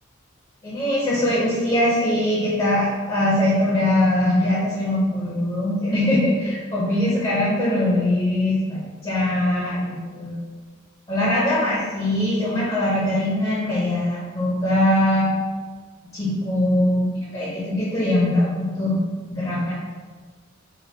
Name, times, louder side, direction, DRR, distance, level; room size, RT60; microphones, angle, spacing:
voice 1, 0.6-10.4 11.1-15.4 16.1-19.0 19.3-19.7, left 1 dB, 25° left, -7 dB, 0.6 m, -22 dB
4.2 x 2.2 x 2.7 m, 1.4 s
head